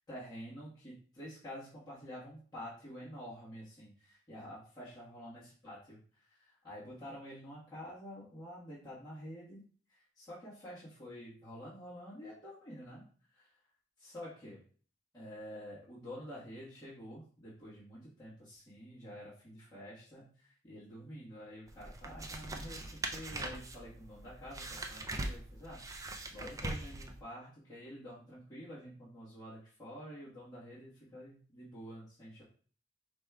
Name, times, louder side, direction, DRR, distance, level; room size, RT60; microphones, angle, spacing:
voice 1, 0.1-6.0 6.3-9.6 9.9-13.0 13.3-13.5 14.0-14.6 15.1-25.8 26.3-32.4, equal, 20° left, -10 dB, 1.3 m, -48 dB
sound 1, 21.7-27.2, right 2 dB, 20° right, 0.4 m, -42 dB
4.9 x 3.6 x 2.3 m, 0.43 s
head